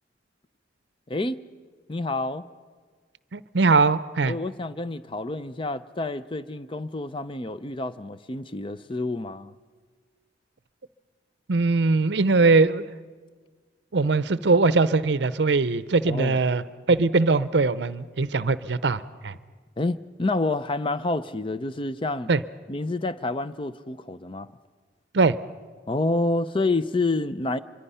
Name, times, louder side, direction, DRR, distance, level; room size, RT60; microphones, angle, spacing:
voice 1, 1.1-1.4 1.9-2.4 4.2-9.5 16.1-16.4 19.8-22.3 22.7-24.5 25.9-27.6, left 2 dB, 30° left, 0.5 m, -28 dB
voice 2, 3.3-4.4 11.5-12.9 13.9-19.3 22.3-22.4 25.1-25.4, right 3 dB, 65° right, 0.6 m, -21 dB
25.0 x 23.5 x 5.6 m
head